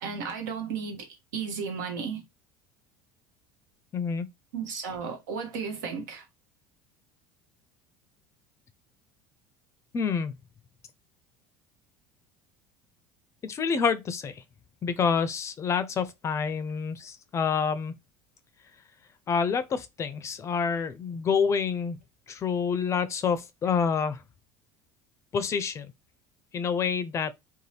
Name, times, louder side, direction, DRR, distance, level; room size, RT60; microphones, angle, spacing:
voice 1, 0.0-2.2 4.5-6.2, right 6 dB, 85° right, 1.0 m, -34 dB
voice 2, 3.9-4.3 9.9-10.3 13.4-14.4 14.8-17.9 19.3-22.0 22.3-24.2 25.3-25.9 26.5-27.3, left 6 dB, 35° left, 0.4 m, -27 dB
2.6 x 2.2 x 3.2 m
supercardioid pair, 90°, 9 cm